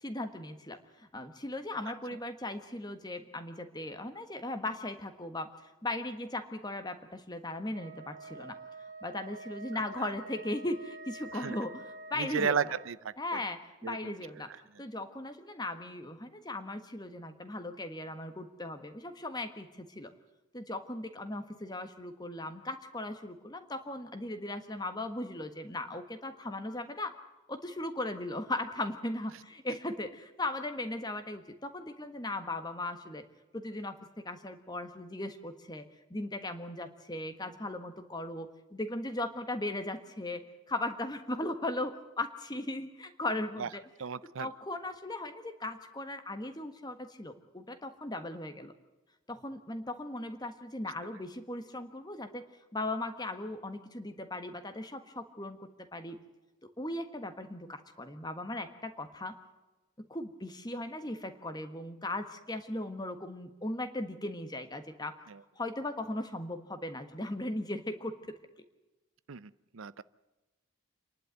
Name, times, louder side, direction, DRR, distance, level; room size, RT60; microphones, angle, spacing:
voice 1, 0.0-5.5 5.8-8.6 9.0-12.6 13.2-14.5 14.8-20.1 20.5-27.2 27.5-33.2 33.5-35.8 36.1-40.4 40.7-43.8 44.4-48.7 49.3-52.4 52.7-56.2 56.6-59.4 60.0-65.2 65.6-68.4, left 2 dB, 20° left, 8 dB, 1.5 m, -38 dB
Wind instrument woodwind instrument, 7.7-13.0, right 2 dB, 40° right, 1.0 m, -47 dB
voice 2, 12.2-13.4 13.8-14.1 43.6-43.7 44.0-44.5 65.3-65.4 69.3-70.0, right 6 dB, 75° right, 17 dB, 0.6 m, -34 dB
27.5 x 11.5 x 9.2 m, 1.1 s
head